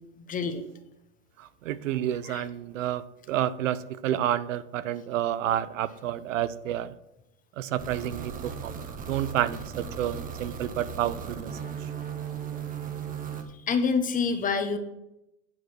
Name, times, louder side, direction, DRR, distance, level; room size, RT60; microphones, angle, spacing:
voice 1, 0.2-0.6 2.3-2.4 13.5-14.8, left 5 dB, 20° left, 9 dB, 1.0 m, -27 dB
voice 2, 1.4-6.9 7.6-11.6, right 11 dB, 80° right, 15 dB, 0.7 m, -30 dB
sound 1, 7.8-13.4, right 7 dB, 20° right, 1.1 m, -37 dB
9.7 x 4.8 x 6.2 m, 0.88 s
hypercardioid pair, 125°, 38 cm